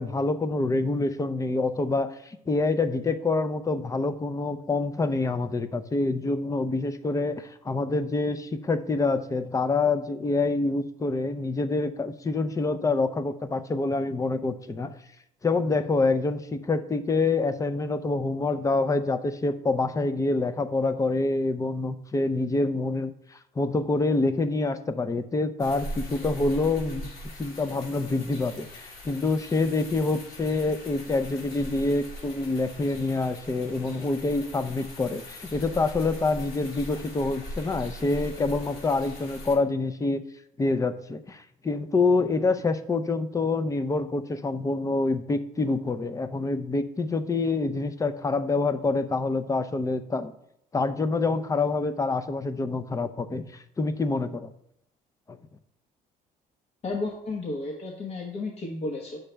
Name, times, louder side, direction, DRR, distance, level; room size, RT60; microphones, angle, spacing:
voice 1, 0.0-15.0 15.4-23.1 23.6-27.1 27.4-40.2 40.6-50.3 50.7-54.5 55.3-55.4, left 3 dB, 20° left, 11 dB, 0.6 m, -26 dB
sound 1, 25.6-39.5, equal, 55° left, 3.4 m, -41 dB
voice 2, 56.8-59.2, left 3 dB, 40° left, 0 dB, 1.2 m, -32 dB
8.6 x 6.5 x 3.4 m, 0.76 s
cardioid pair, 110°, 17 cm